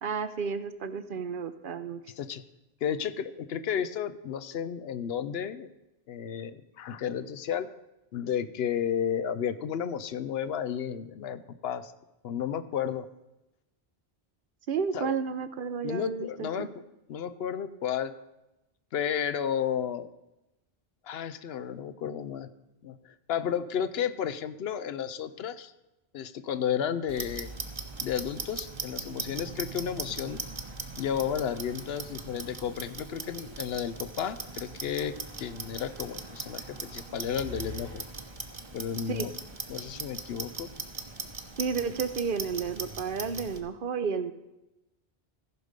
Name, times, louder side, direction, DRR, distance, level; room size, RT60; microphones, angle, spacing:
voice 1, 0.0-2.0 14.7-16.7 39.1-39.3 41.6-44.3, right 6 dB, 60° right, 11 dB, 0.8 m, -32 dB
voice 2, 2.8-5.7 6.1-7.7 8.1-11.9 12.2-13.1 14.9-15.1 15.8-16.7 17.1-18.1 18.9-20.1 21.0-22.5 22.8-25.7 26.1-27.5 28.0-30.4 31.0-38.0 38.7-39.3 39.7-40.7, left 8 dB, 70° left, 13 dB, 0.8 m, -32 dB
Clock, 27.1-43.6, right 3 dB, 30° right, 0.8 m, -40 dB
15.0 x 5.1 x 6.6 m, 0.96 s
omnidirectional pair, 1.1 m